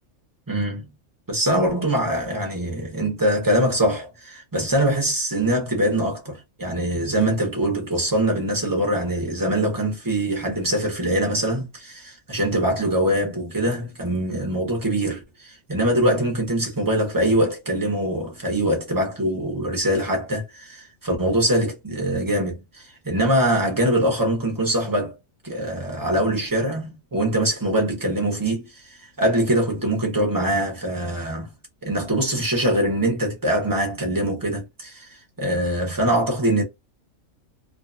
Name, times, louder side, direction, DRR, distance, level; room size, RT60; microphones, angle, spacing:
voice 1, 0.5-0.9 1.3-25.2 25.4-28.8 29.2-31.5 31.8-35.1 35.4-36.6, right 1 dB, 25° right, 0.5 m, -23 dB
2.6 x 2.2 x 2.4 m
omnidirectional pair, 1.5 m